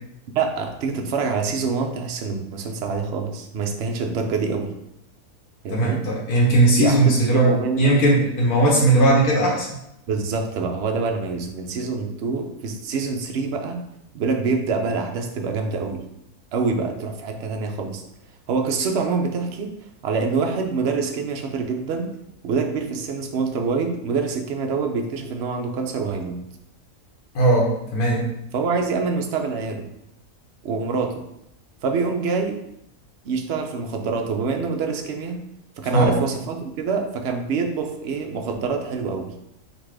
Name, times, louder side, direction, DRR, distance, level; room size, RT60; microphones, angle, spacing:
voice 1, 0.3-4.7 5.6-6.0 6.8-8.0 10.1-13.8 14.1-16.0 16.5-18.0 18.5-19.7 20.0-22.1 22.4-26.4 28.5-29.9 30.6-31.2 31.8-32.6 33.2-35.4 35.8-39.3, right 4 dB, 60° right, 3 dB, 0.7 m, -25 dB
voice 2, 5.7-9.7 27.3-28.2 35.9-36.2, right 2 dB, 75° left, -3 dB, 1.4 m, -18 dB
3.9 x 2.5 x 4.7 m, 0.80 s
omnidirectional pair, 1.6 m